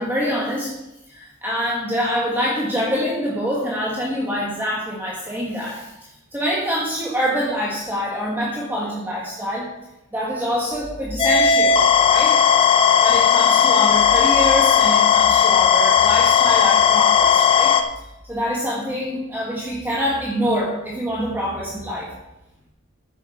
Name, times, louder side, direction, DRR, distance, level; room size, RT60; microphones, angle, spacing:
voice 1, 0.0-0.8 1.1-5.9 6.3-9.7 10.1-12.4 13.0-17.7 18.3-22.1, equal, 10° right, -4 dB, 1.5 m, -25 dB
sound 1, 11.2-17.8, left 7 dB, 25° left, 0.7 m, -16 dB
13.0 x 7.1 x 4.2 m, 0.94 s
head